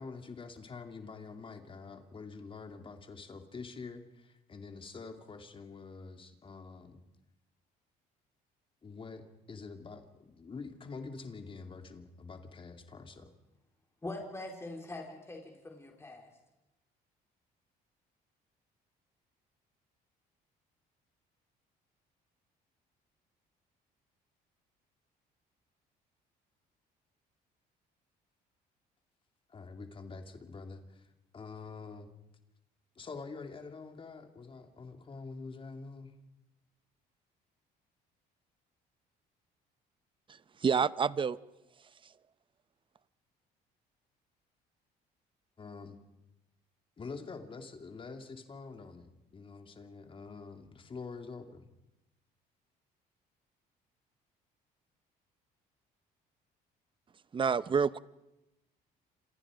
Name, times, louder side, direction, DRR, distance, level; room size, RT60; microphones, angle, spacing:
voice 1, 0.0-7.0 8.8-13.3 29.5-31.1 31.3-32.1 33.0-36.2 45.6-46.0 47.0-51.7, left 4 dB, 30° left, 6 dB, 2.7 m, -46 dB
voice 2, 14.0-16.3, left 2 dB, 15° left, 1 dB, 4.3 m, -43 dB
voice 3, 40.3-41.4 42.0-42.1 57.3-58.0, right 6 dB, 30° right, 17 dB, 0.8 m, -29 dB
27.5 x 27.0 x 5.1 m, 0.95 s
cardioid pair, 110°, 17 cm